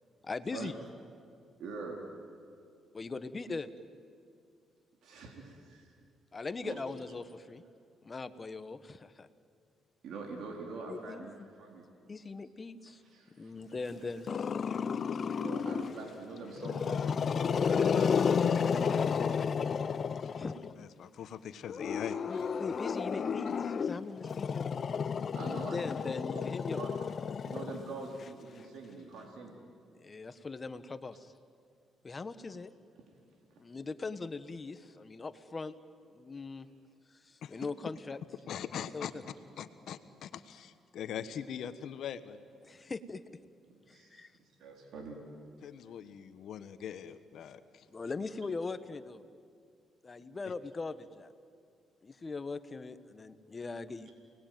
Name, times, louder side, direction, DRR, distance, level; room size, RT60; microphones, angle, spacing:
voice 1, 0.2-0.7 2.9-3.7 6.3-7.6 8.0-9.3 10.9-11.5 12.1-13.0 13.4-14.3 20.4-20.6 22.3-24.7 25.4-26.8 30.0-31.3 32.0-32.7 33.6-35.8 36.1-36.7 37.3-38.2 38.9-39.2 42.6-43.2 43.9-44.3 47.9-49.2 50.0-51.3 52.0-54.1, left 3 dB, 30° left, 12 dB, 1.3 m, -40 dB
voice 2, 1.6-2.0 5.0-5.9 6.6-6.8 10.0-11.9 13.1-14.1 15.4-19.1 22.3-22.4 25.3-26.9 27.4-29.5 43.7-45.2, right 3 dB, 75° right, 0 dB, 4.0 m, -45 dB
Growling, 14.3-16.0 16.6-20.7 21.7-28.2, left 6 dB, 50° left, 0.7 m, -32 dB
voice 3, 20.8-22.2 37.4-37.7 38.5-39.1 39.6-42.4 45.6-47.8 50.4-50.5, left 9 dB, 70° left, 11 dB, 1.3 m, -42 dB
29.5 x 20.5 x 9.3 m, 2.3 s
cardioid pair, 90°, 0 cm